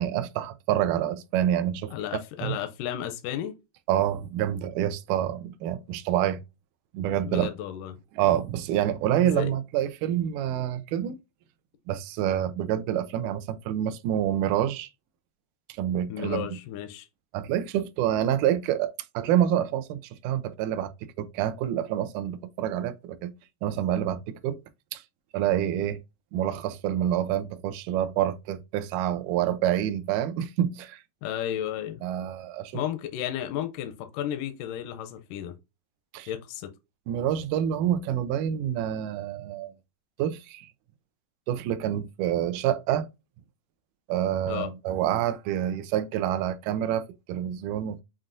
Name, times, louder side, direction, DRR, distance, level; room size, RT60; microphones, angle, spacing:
voice 1, 0.0-1.9 2.4-2.5 3.9-6.4 6.9-7.5 8.1-11.2 11.9-14.9 15.8-16.5 17.3-20.9 21.2-23.3 23.6-24.6 24.9-25.0 25.3-26.0 26.3-31.0 32.0-32.7 36.1-36.3 37.1-39.7 40.2-40.7 41.5-43.1 44.1-48.0, right 11 dB, 75° right, 2.0 m, -27 dB
voice 2, 1.9-3.5 7.3-8.0 9.3-9.5 16.1-17.1 31.2-32.0 32.7-35.5 36.3-36.7 44.5-44.7, left 11 dB, 80° left, 2.1 m, -33 dB
7.4 x 2.6 x 2.5 m
omnidirectional pair, 4.0 m